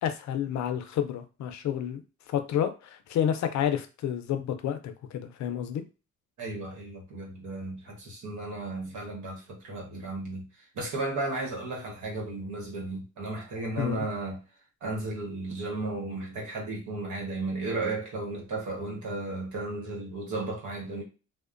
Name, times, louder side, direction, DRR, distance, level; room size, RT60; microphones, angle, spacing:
voice 1, 0.0-2.0 2.3-5.8 13.8-14.1, left 9 dB, 70° left, 0.5 m, -30 dB
voice 2, 6.4-10.5 10.7-14.4 14.8-21.0, right 2 dB, 70° right, 1.2 m, -34 dB
2.7 x 2.1 x 2.5 m
cardioid pair, 90°, 30 cm